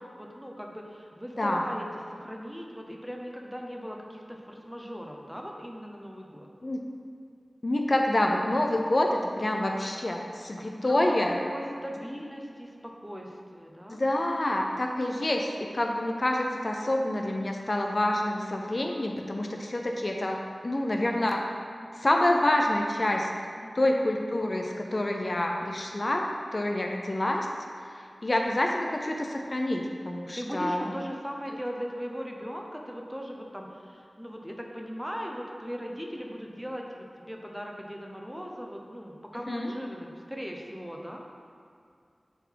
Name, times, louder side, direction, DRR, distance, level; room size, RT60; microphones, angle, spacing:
voice 1, 0.0-6.5 10.6-11.2 11.5-14.0 23.6-24.0 26.8-27.2 30.3-41.2, equal, 5° right, 0 dB, 0.8 m, -39 dB
voice 2, 7.6-9.1 9.4-11.4 13.9-21.4 21.9-23.3 23.8-27.5 28.2-30.9 39.5-39.7, left 1 dB, 50° left, 1 dB, 0.6 m, -27 dB
6.8 x 4.0 x 4.7 m, 2.3 s
wide cardioid pair, 45°, 0 cm